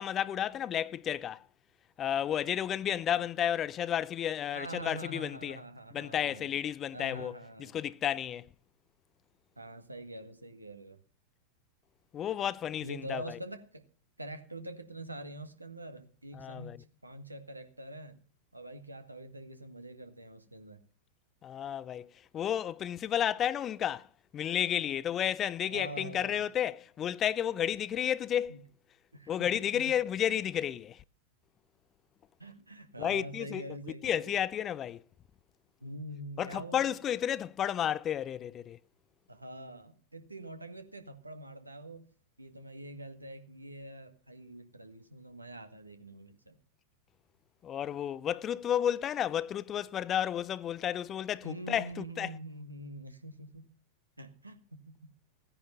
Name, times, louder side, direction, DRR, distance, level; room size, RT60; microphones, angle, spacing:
voice 1, 0.0-1.4 2.0-5.6 5.9-7.4 7.7-8.5 12.1-13.4 16.4-16.8 21.4-24.1 24.3-28.6 29.3-31.0 33.0-33.6 34.0-35.0 36.4-38.8 47.6-52.3, left 10 dB, 30° left, 0.6 m, -32 dB
voice 2, 4.5-6.6 6.9-7.8 9.6-11.0 12.8-13.8 14.2-18.2 18.5-20.8 25.7-26.4 28.5-28.6 29.1-29.9 32.4-34.3 35.8-36.9 39.3-42.0 42.4-46.6 51.4-53.6 54.2-54.6, right 1 dB, 85° right, 1.9 m, -45 dB
16.5 x 10.0 x 5.5 m
figure-of-eight pair, 90°, 0 cm